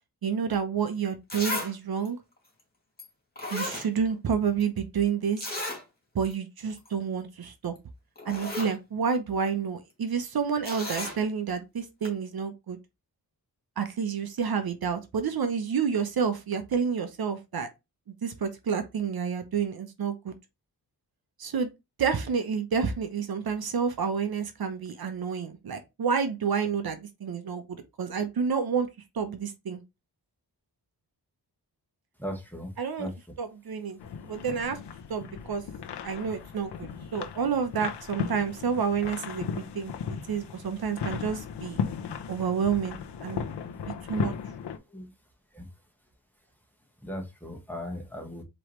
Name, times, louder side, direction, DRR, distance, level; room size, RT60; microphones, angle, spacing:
voice 1, 0.2-2.2 3.5-5.5 6.1-7.8 8.2-12.8 13.8-17.7 18.2-20.3 21.4-21.7 22.0-28.9 29.1-29.8 32.8-33.1 33.4-34.0 34.3-34.8 35.1-35.6 36.0-41.8 42.3-43.5 43.8-44.3, right 6 dB, 65° right, 0.8 m, -29 dB
Zipper (clothing), 0.8-0.9 1.3-1.7 2.0-2.1 3.0-3.1 3.4-4.3 4.6-4.7 5.4-5.8 6.2-6.3 6.7-6.9 7.8-7.9 8.2-8.7 10.6-11.2 12.0-12.1, left 2 dB, 25° left, 2.2 m, -34 dB
voice 2, 32.2-32.7 33.0-33.1 44.9-45.1 45.5-45.6 47.0-48.4, equal, 5° left, 1.4 m, -37 dB
sound 1, 34.0-44.8, left 7 dB, 85° left, 0.7 m, -36 dB
4.7 x 3.1 x 3.0 m
wide cardioid pair, 85°, 40 cm